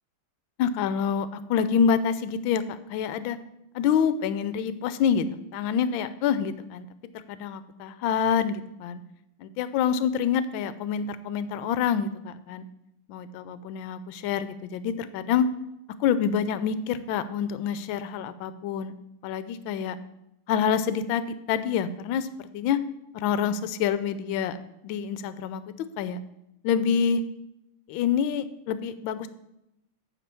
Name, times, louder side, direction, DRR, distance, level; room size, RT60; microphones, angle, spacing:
voice 1, 0.6-3.4 3.7-6.9 7.3-9.0 9.4-12.7 13.1-15.5 16.0-18.9 19.2-20.0 20.5-22.3 22.5-22.8 23.1-24.6 24.8-25.6 26.0-26.2 26.6-27.2 27.9-29.3, left 7 dB, 75° left, 13 dB, 1.3 m, -27 dB
9.4 x 3.7 x 6.8 m, 0.84 s
omnidirectional pair, 2.3 m